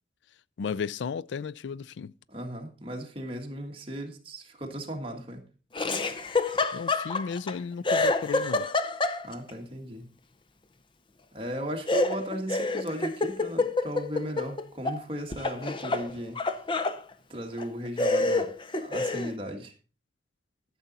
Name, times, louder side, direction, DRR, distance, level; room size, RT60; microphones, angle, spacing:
voice 1, 0.6-2.1 6.7-8.7, left 6 dB, 90° left, 0.4 m, -34 dB
voice 2, 2.3-5.4 9.2-10.1 11.3-16.4 17.3-18.5 18.8-19.7, equal, 30° right, 1.6 m, -36 dB
Laughter, 5.7-7.5 7.8-9.5 11.9-15.0 15.3-17.0 17.6-17.7 18.0-19.3, left 2 dB, 30° left, 0.7 m, -27 dB
12.0 x 7.0 x 4.0 m
head